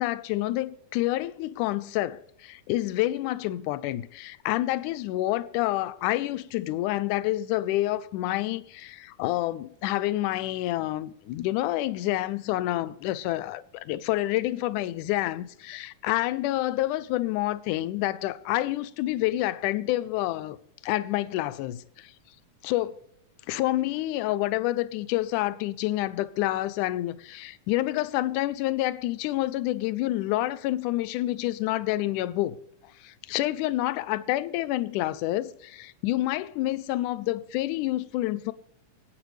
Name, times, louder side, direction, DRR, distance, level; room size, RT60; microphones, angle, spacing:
voice 1, 0.0-20.6 20.8-22.1 22.6-22.9 23.5-32.6 33.0-38.5, left 16 dB, 80° left, 2.0 m, -28 dB
26.0 x 8.8 x 3.3 m
omnidirectional pair, 3.8 m